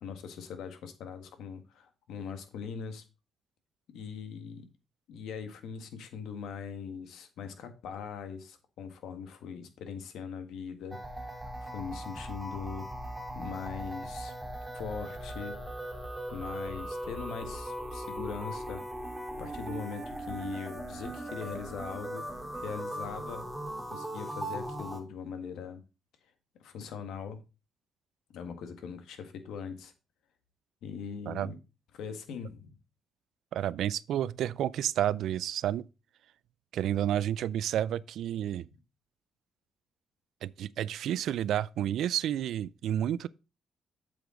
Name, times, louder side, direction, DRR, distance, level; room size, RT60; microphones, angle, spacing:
voice 1, 0.0-3.0 3.9-4.7 5.1-12.9 13.3-14.3 14.7-15.6 16.3-18.8 19.4-22.3 22.5-23.5 23.9-25.8 26.6-27.4 28.3-29.9 30.8-31.6 31.9-32.8, left 6 dB, 80° left, 1.7 m, -41 dB
sound 1, 10.9-25.0, right 1 dB, 10° right, 2.6 m, -39 dB
voice 2, 33.5-35.9 36.7-38.7 40.4-43.3, right 11 dB, 75° right, 0.4 m, -30 dB
8.1 x 7.0 x 3.8 m
cardioid pair, 90°, 0 cm